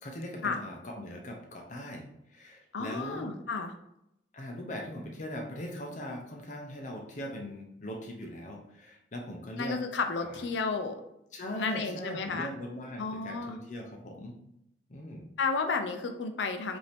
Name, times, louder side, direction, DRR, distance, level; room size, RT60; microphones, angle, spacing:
voice 1, 0.0-3.3 4.3-9.8 10.2-10.4 11.3-14.4 14.9-15.2, left 1 dB, 40° left, 1 dB, 0.6 m, -40 dB
voice 2, 2.7-3.7 9.6-11.0 11.6-12.5 13.0-13.6 15.4-16.8, left 4 dB, 85° left, 6 dB, 0.6 m, -32 dB
5.3 x 2.7 x 3.4 m, 0.80 s
head